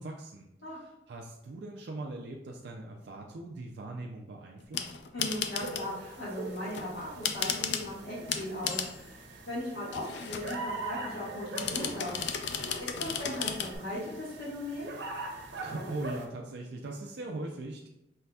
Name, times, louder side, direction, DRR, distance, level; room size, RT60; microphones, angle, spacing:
voice 1, 0.0-4.9 15.5-17.9, right 2 dB, 70° right, 0 dB, 0.4 m, -40 dB
sound 1, 4.6-6.0 6.6-7.9 8.3-9.0 9.9-10.7 11.6-13.8, left 7 dB, 80° left, 0.4 m, -34 dB
voice 2, 5.1-9.2 9.5-12.1 12.8-14.9, left 1 dB, 65° left, -10 dB, 1.4 m, -38 dB
sound 2, 5.6-16.3, right 2 dB, 90° right, 0.8 m, -42 dB
5.6 x 3.3 x 2.3 m, 0.86 s
head